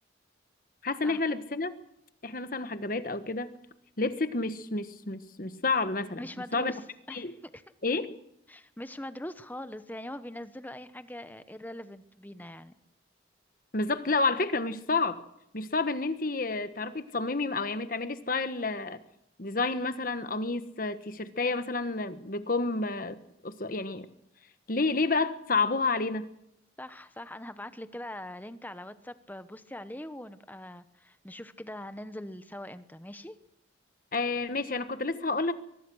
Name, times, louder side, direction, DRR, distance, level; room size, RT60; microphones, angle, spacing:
voice 1, 0.8-1.8 2.2-3.6 4.0-6.2 6.5-6.7 7.1-7.3 7.8-8.2 13.7-15.2 15.5-19.0 19.4-23.2 23.4-24.1 24.7-26.3 34.1-35.5, left 3 dB, 50° left, 11 dB, 1.4 m, -30 dB
voice 2, 6.2-6.8 7.1-7.6 8.5-12.7 26.8-33.4, left 1 dB, 10° left, 12 dB, 1.0 m, -42 dB
23.0 x 20.0 x 6.4 m, 0.78 s
head